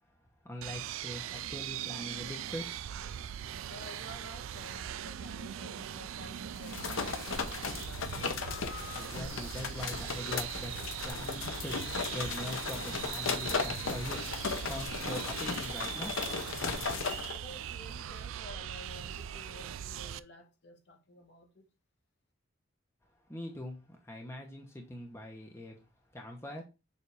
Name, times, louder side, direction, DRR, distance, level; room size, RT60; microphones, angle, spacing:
voice 1, 0.4-2.7 8.9-10.7 11.0-11.8 12.1-14.2 14.6-16.2 23.3-25.7 26.1-26.6, left 1 dB, 15° left, 1.0 m, -42 dB
sound 1, 0.6-20.2, right 10 dB, 80° right, 0.3 m, -41 dB
voice 2, 3.7-8.1 17.4-21.6, left 1 dB, 55° left, 1.5 m, -52 dB
sound 2, 6.6-17.4, left 5 dB, 80° left, 0.9 m, -36 dB
7.0 x 2.8 x 4.8 m
head